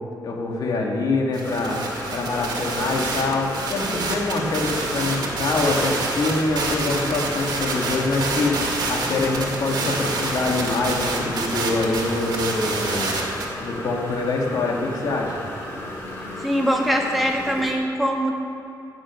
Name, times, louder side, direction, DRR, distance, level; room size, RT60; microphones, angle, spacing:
voice 1, 0.2-1.8 2.1-13.2 13.6-15.4, left 3 dB, 60° left, 0 dB, 2.0 m, -25 dB
sound 1, 1.3-13.5, right 3 dB, 70° right, 2.0 m, -28 dB
sound 2, 1.4-17.7, left 1 dB, 35° left, 2.9 m, -35 dB
voice 2, 16.4-18.3, equal, ahead, -1 dB, 1.6 m, -22 dB
16.5 x 6.4 x 6.5 m, 2.9 s
wide cardioid pair, 135°, 7 cm